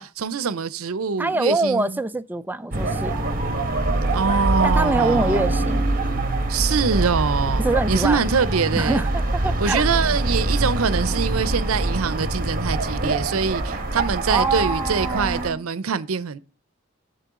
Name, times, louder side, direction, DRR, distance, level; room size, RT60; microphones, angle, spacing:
voice 1, 0.0-2.0 4.1-5.5 6.5-9.0 9.6-16.4, right 5 dB, 80° right, 0.6 m, -24 dB
voice 2, 1.2-3.1 4.6-5.9 7.6-8.2 8.8-9.9 14.3-15.7, right 2 dB, 10° right, 0.3 m, -25 dB
sound 1, 2.7-15.5, right 2 dB, 45° right, 1.3 m, -24 dB
7.5 x 6.9 x 3.7 m
head